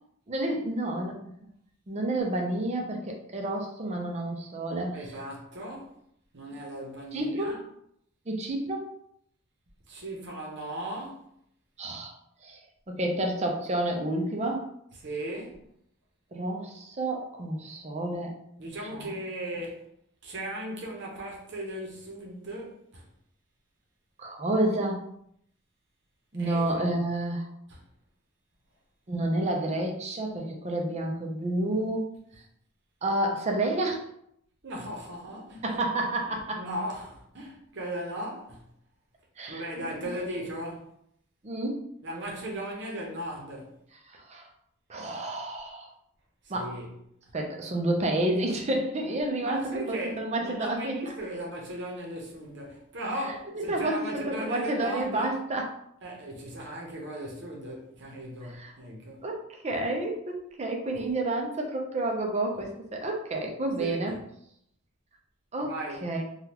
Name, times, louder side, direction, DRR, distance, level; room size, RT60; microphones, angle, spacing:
voice 1, 0.3-1.3 1.9-5.0 7.1-7.6 8.3-8.9 11.8-12.1 12.4-12.6 12.9-14.7 16.3-18.3 18.9-19.1 24.2-25.0 26.3-27.5 29.1-32.4 33.0-34.0 35.6-36.6 39.4-39.9 41.4-41.9 44.1-44.5 44.9-45.9 46.5-46.7 47.3-51.0 53.5-55.7 58.4-58.7 59.2-64.1 65.5-65.8 66.0-66.2, right 1 dB, 35° right, 0.5 m, -30 dB
voice 2, 4.9-6.0 6.3-7.6 9.9-11.3 15.0-15.7 18.6-19.9 20.2-23.1 26.4-26.6 27.7-27.8 34.6-35.6 36.6-38.6 39.5-40.9 42.0-43.8 46.4-46.9 49.4-55.3 56.0-59.2 63.8-64.0 65.6-66.1, right 1 dB, 60° right, 0.8 m, -37 dB
3.5 x 2.3 x 2.9 m
head